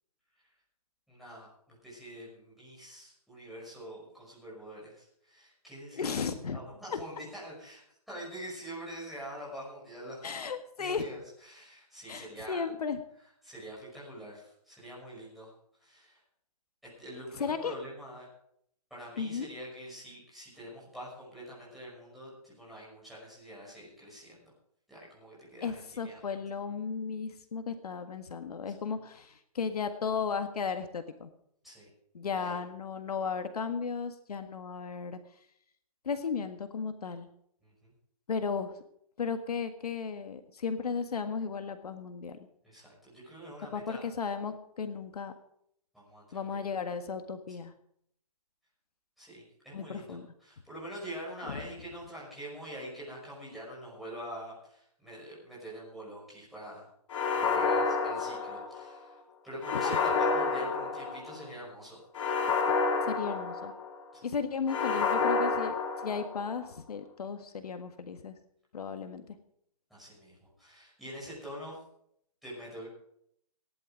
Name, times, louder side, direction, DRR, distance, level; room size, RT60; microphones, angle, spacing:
voice 1, 1.1-6.2 6.5-10.4 10.8-11.2 11.4-12.6 13.4-15.5 15.8-16.2 17.0-18.3 18.9-24.4 24.9-26.3 31.6-31.9 32.3-32.6 37.6-37.9 42.6-44.0 45.9-46.7 49.2-56.9 57.3-59.2 59.4-62.0 64.1-64.3 69.9-71.8 72.4-72.9, equal, ahead, -9 dB, 6.0 m, -45 dB
voice 2, 5.9-6.6 6.9-7.0 10.2-11.1 12.1-13.0 17.4-17.7 19.2-19.5 25.6-31.3 32.1-35.2 36.0-37.3 38.3-38.8 39.2-42.4 43.7-45.3 46.3-47.7 49.7-50.3 51.5-51.6 59.7-60.0 63.0-63.7 64.2-65.7 66.0-68.3 68.7-69.4, left 5 dB, 75° left, 8 dB, 1.7 m, -35 dB
sound 1, 57.1-59.0 59.6-61.4 62.1-64.0 64.7-66.6, left 4 dB, 50° left, 2.7 m, -29 dB
17.5 x 11.0 x 5.2 m, 0.70 s
hypercardioid pair, 170°, 20 cm